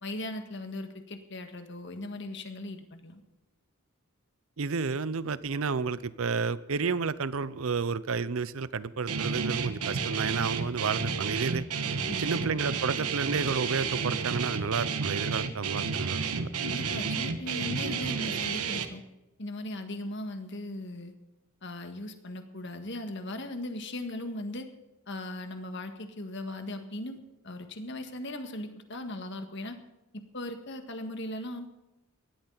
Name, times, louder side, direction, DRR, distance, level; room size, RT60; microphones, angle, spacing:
voice 1, 0.0-3.2 12.1-12.5 16.6-19.0 19.4-21.1 21.6-24.7 25.1-29.8 30.3-31.7, left 1 dB, 50° left, 7 dB, 1.7 m, -38 dB
voice 2, 4.6-11.7 12.2-16.5, right 5 dB, 70° right, 17 dB, 0.6 m, -31 dB
Guitar, 9.1-18.8, right 5 dB, 85° right, 1.3 m, -31 dB
18.5 x 13.5 x 4.0 m, 0.98 s
head